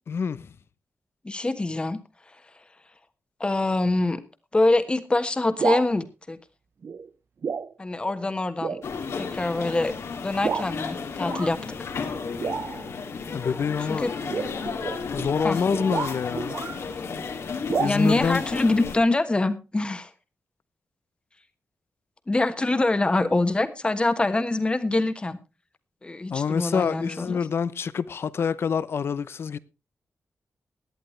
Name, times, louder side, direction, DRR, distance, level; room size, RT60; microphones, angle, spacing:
voice 1, 0.1-0.5 13.3-14.1 15.1-16.6 17.5-18.4 26.3-29.6, left 6 dB, 65° left, 0.7 m, -26 dB
voice 2, 1.2-2.0 3.4-4.2 4.5-6.4 7.8-8.8 9.2-9.9 10.2-11.8 13.9-14.1 15.4-15.6 17.8-20.1 22.3-25.4 26.0-27.4, left 2 dB, 20° left, 1.3 m, -24 dB
sound 1, 5.4-5.9 6.8-7.1 7.4-7.7 8.1-8.2 8.6-8.9 9.5-9.7 10.4-10.7 11.2-11.5 12.4-12.9 14.2-16.8 17.7-17.9, right 6 dB, 55° right, 0.7 m, -30 dB
sound 2, 8.8-19.0, left 5 dB, 85° left, 2.4 m, -33 dB
17.5 x 11.0 x 3.2 m
wide cardioid pair, 120°, 5 cm